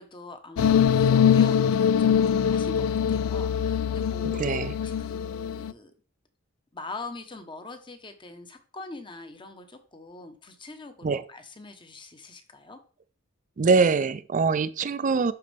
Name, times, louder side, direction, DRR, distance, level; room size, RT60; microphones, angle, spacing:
voice 1, 0.0-5.9 6.7-12.8, left 3 dB, 25° left, 1.0 m, -43 dB
sound 1, 0.6-5.7, left 8 dB, 85° left, 0.3 m, -23 dB
voice 2, 4.2-4.8 11.0-11.2 13.6-15.3, right 4 dB, 40° right, 0.4 m, -23 dB
11.5 x 4.2 x 3.4 m
head